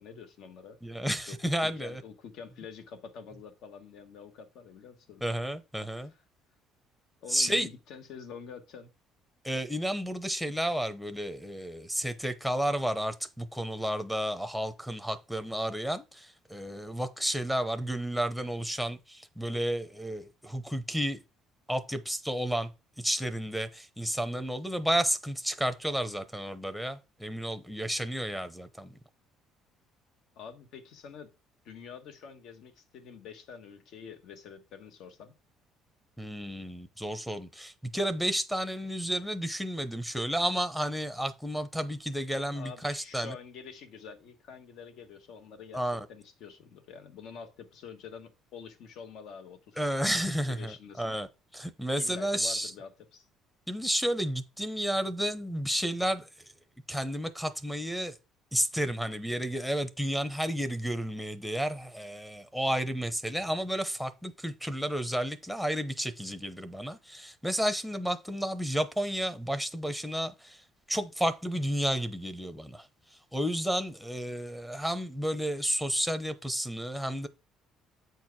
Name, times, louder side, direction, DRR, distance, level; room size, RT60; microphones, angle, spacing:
voice 1, 0.0-0.8 1.3-5.2 5.9-6.0 7.2-8.9 30.3-31.3 31.6-35.3 42.5-49.8 50.5-51.2 51.9-53.2, left 6 dB, 70° left, 1.3 m, -47 dB
voice 2, 0.8-2.0 5.2-6.1 7.3-7.7 9.4-21.2 21.7-22.7 23.0-29.0 36.2-43.3 45.7-46.1 49.8-51.3 51.5-52.7 53.7-56.3 56.9-58.2 58.5-70.6 70.9-72.9 73.3-77.3, equal, ahead, 0.7 m, -31 dB
8.1 x 4.6 x 4.6 m
cardioid pair, 130°, 0 cm